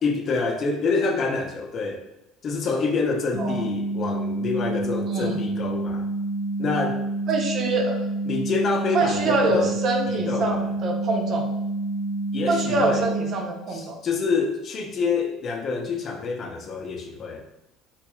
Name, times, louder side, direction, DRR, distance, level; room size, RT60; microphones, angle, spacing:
voice 1, 0.0-2.0 2.4-6.1 6.6-7.0 8.3-9.7 10.1-10.7 12.3-13.0 13.7-17.4, left 4 dB, 45° left, 3 dB, 0.5 m, -27 dB
sound 1, 3.3-13.3, right 2 dB, 85° right, 0.6 m, -28 dB
voice 2, 5.1-5.4 7.3-8.0 8.9-11.5 12.5-14.0, right 2 dB, 55° right, 2 dB, 0.7 m, -25 dB
3.7 x 2.8 x 2.3 m, 0.93 s
supercardioid pair, 95°, 0 cm